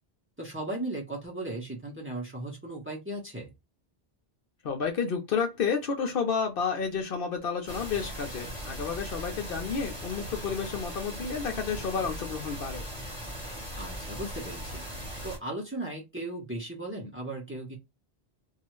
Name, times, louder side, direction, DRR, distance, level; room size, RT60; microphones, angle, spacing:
voice 1, 0.4-3.5 13.7-14.8 15.2-17.8, right 1 dB, 10° right, 0.9 m, -36 dB
voice 2, 4.6-12.9, left 6 dB, 60° left, 0.8 m, -31 dB
sound 1, 7.7-15.4, equal, 30° right, 1.2 m, -39 dB
2.7 x 2.4 x 3.0 m
omnidirectional pair, 1.1 m